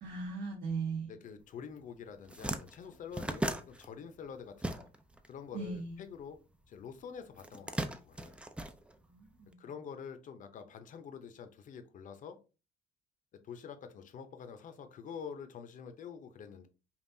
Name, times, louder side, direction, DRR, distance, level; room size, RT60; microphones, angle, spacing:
voice 1, 0.0-1.1 5.5-6.0 9.0-9.6, right 4 dB, 75° right, 1.3 m, -38 dB
voice 2, 1.1-4.9 5.3-6.4 6.7-8.4 9.6-12.4 13.4-16.7, left 7 dB, 50° left, 0.7 m, -47 dB
sound 1, 1.7-1.8 2.1-5.3 5.5-6.7 7.3-9.4, right 1 dB, 5° right, 0.4 m, -38 dB
5.3 x 2.5 x 2.7 m
cardioid pair, 110°, 17 cm